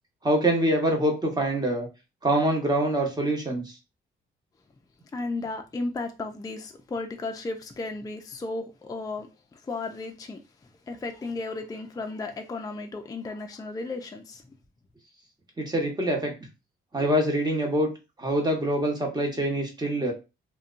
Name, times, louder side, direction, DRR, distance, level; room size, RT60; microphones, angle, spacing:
voice 1, 0.2-1.9 2.2-3.7 15.6-16.3 16.9-17.9 18.2-20.1, right 1 dB, 20° right, 1.0 m, -25 dB
voice 2, 5.1-14.4, left 3 dB, 20° left, 0.4 m, -34 dB
2.6 x 2.2 x 2.4 m
cardioid pair, 70°, 21 cm